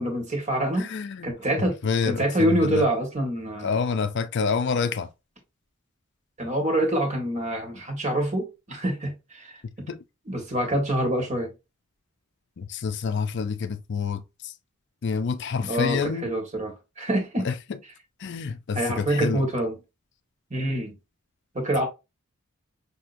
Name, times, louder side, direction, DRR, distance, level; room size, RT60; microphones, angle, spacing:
voice 1, 0.0-0.9 1.2-1.8 2.0-3.7 6.4-9.5 10.2-11.5 15.6-17.5 18.7-19.8 20.5-20.9 21.5-21.9, right 1 dB, 30° right, 1.5 m, -26 dB
voice 2, 0.8-1.3 1.8-2.8 3.6-5.1 9.9-10.0 12.6-14.2 15.0-16.2 17.4-17.5 18.2-19.4, left 5 dB, 55° left, 0.4 m, -27 dB
5.9 x 2.8 x 2.5 m
head